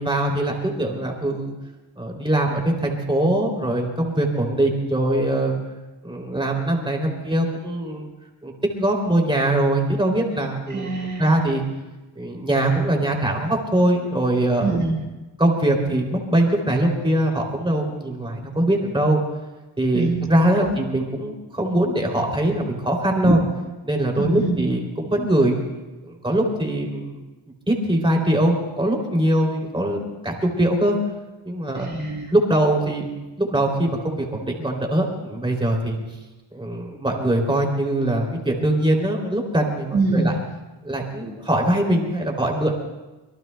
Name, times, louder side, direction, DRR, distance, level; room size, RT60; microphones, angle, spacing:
voice 1, 0.0-1.5 2.0-5.6 6.0-8.1 8.4-10.9 11.2-11.6 12.1-14.8 15.4-19.2 19.8-23.4 23.8-25.6 26.0-27.2 27.7-31.0 31.4-31.9 32.3-33.1 33.4-36.0 36.5-40.3 40.8-42.7, right 1 dB, 10° right, 0 dB, 2.9 m, -22 dB
voice 2, 10.7-11.3 14.6-15.1 19.9-20.8 23.2-23.4 24.1-24.7 31.7-32.3 39.9-40.4, right 3 dB, 35° right, -3 dB, 1.8 m, -24 dB
25.5 x 23.0 x 2.2 m, 1.1 s
wide cardioid pair, 150°, 49 cm